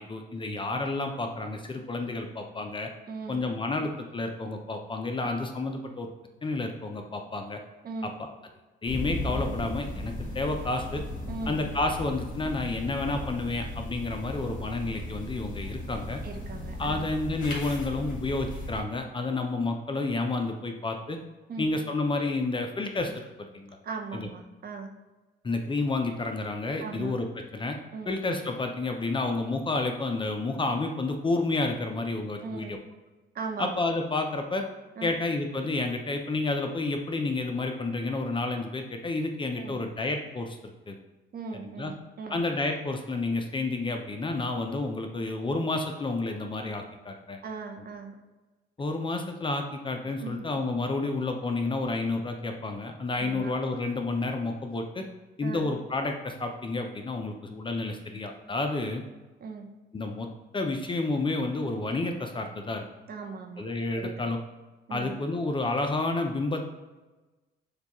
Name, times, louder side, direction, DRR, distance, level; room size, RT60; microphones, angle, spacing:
voice 1, 0.0-2.9 3.3-6.1 6.4-7.6 8.0-8.3 8.8-11.0 11.5-16.2 16.8-21.2 21.6-23.2 23.5-23.8 24.1-24.3 25.4-27.3 27.5-27.8 28.1-32.8 33.6-34.7 35.0-41.0 41.8-41.9 42.3-47.4 48.8-55.0 55.4-59.0 59.9-60.3 60.5-62.9 63.6-64.4 64.9-66.6, left 2 dB, 25° left, 4 dB, 0.5 m, -30 dB
voice 2, 3.1-3.4 7.8-8.2 11.3-11.6 16.2-17.1 21.5-21.7 23.8-24.9 26.8-27.1 27.9-28.1 32.4-32.8 33.3-33.7 35.0-35.2 39.6-39.8 41.3-42.4 47.4-48.2 50.2-50.5 53.2-53.5 55.4-55.7 59.4-59.7 63.1-63.6 63.9-64.1 64.9-65.1, right 4 dB, 50° right, 3 dB, 0.7 m, -38 dB
Thunderstorm CT, 8.9-18.8, left 1 dB, 45° left, 1.4 m, -36 dB
6.6 x 2.3 x 2.9 m, 1.2 s
cardioid pair, 90°, 20 cm